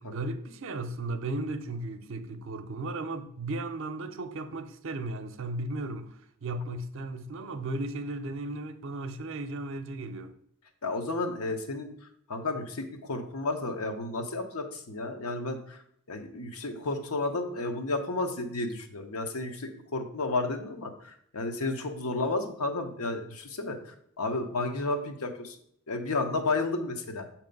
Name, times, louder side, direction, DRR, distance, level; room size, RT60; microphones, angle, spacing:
voice 1, 0.0-10.3, right 2 dB, 60° right, 0.5 m, -35 dB
voice 2, 10.8-11.9 12.3-15.8 16.1-23.8 24.2-25.6 25.9-27.3, left 2 dB, 80° left, 0.9 m, -32 dB
6.7 x 3.0 x 5.2 m
head